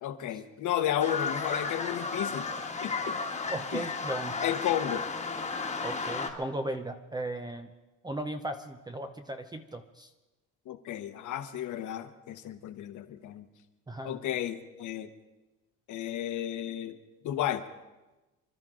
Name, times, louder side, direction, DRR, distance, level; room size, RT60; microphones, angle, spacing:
voice 1, 0.0-2.5 2.8-3.2 3.7-3.9 4.4-5.0 10.7-13.4 14.0-15.1 15.9-16.9 17.2-17.6, left 11 dB, 60° left, 9 dB, 1.2 m, -33 dB
sound 1, 1.0-6.3, left 4 dB, 20° left, 1.5 m, -33 dB
voice 2, 3.5-4.4 5.8-7.7 8.0-10.1 13.9-14.2, right 1 dB, 10° right, 6 dB, 0.7 m, -36 dB
26.0 x 12.5 x 3.8 m, 1.1 s
cardioid pair, 140°, 34 cm